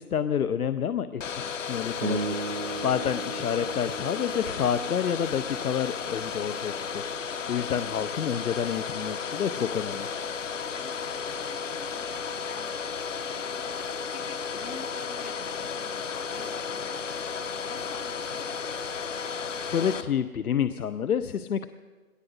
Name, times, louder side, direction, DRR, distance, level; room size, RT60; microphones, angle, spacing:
voice 1, 0.0-10.1 19.7-21.7, left 8 dB, 75° left, 12 dB, 0.7 m, -29 dB
Domestic sounds home sounds, 1.2-20.0, left 6 dB, 55° left, 1.1 m, -34 dB
sound 1, 2.0-6.5, right 3 dB, 40° right, 0.6 m, -37 dB
voice 2, 10.6-18.4, left 4 dB, 90° left, 2 dB, 2.7 m, -49 dB
20.0 x 18.0 x 4.0 m, 1.4 s
hypercardioid pair, 165°, 45 cm